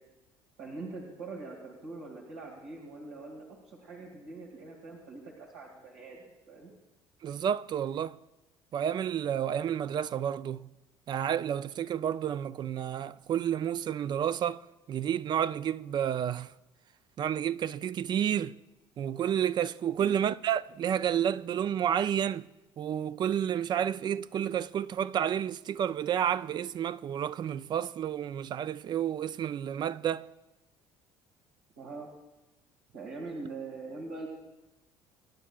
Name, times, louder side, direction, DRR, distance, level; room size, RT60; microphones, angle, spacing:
voice 1, 0.6-6.2 6.5-6.7 20.0-20.2 31.8-32.1 32.9-34.3, right 3 dB, 90° right, 2.1 m, -43 dB
voice 2, 7.2-8.2 8.7-10.7 11.1-14.6 14.9-16.5 17.2-18.6 19.0-22.5 22.8-30.3, right 9 dB, 45° right, 0.4 m, -30 dB
24.5 x 10.5 x 2.4 m
supercardioid pair, 85°, 10 cm